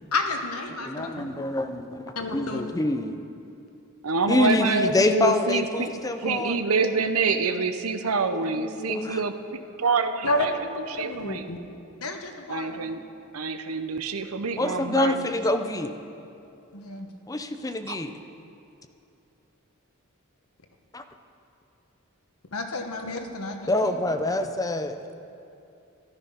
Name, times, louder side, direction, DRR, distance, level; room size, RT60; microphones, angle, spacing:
voice 1, 0.1-1.1 2.2-2.7 10.2-10.5 10.9-11.6 12.0-12.9 16.7-17.1 22.5-24.0, left 2 dB, 85° left, 4 dB, 1.2 m, -30 dB
voice 2, 0.9-2.0 2.3-3.2 4.3-6.6 8.3-9.2 14.6-15.9 17.3-18.1 23.7-25.0, left 2 dB, 15° left, 7 dB, 0.6 m, -26 dB
voice 3, 4.0-5.9 6.2-10.5 10.9-11.4 12.5-13.0 13.3-15.3 17.9-18.0, right 4 dB, 80° right, 9 dB, 0.8 m, -27 dB
13.5 x 12.0 x 5.6 m, 2.6 s
head